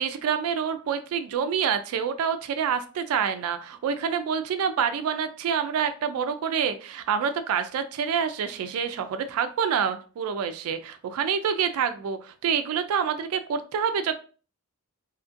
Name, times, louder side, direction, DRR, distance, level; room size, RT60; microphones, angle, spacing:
voice 1, 0.0-14.1, right 7 dB, 75° right, 9 dB, 0.3 m, -27 dB
2.8 x 2.5 x 2.5 m, 0.38 s
head